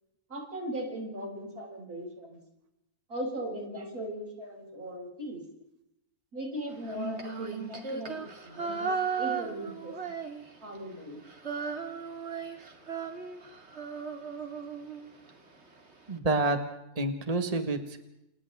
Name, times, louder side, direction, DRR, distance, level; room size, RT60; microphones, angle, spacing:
voice 1, 0.3-2.4 3.1-5.4 6.3-9.9 10.6-11.2, equal, 70° right, -1 dB, 7.9 m, -38 dB
Female singing, 6.8-10.8 11.0-15.3, right 5 dB, 45° right, 2.6 m, -36 dB
voice 2, 16.1-16.6 16.9-18.0, right 2 dB, 25° right, 6 dB, 1.7 m, -28 dB
29.5 x 29.5 x 3.6 m, 0.87 s
omnidirectional pair, 1.6 m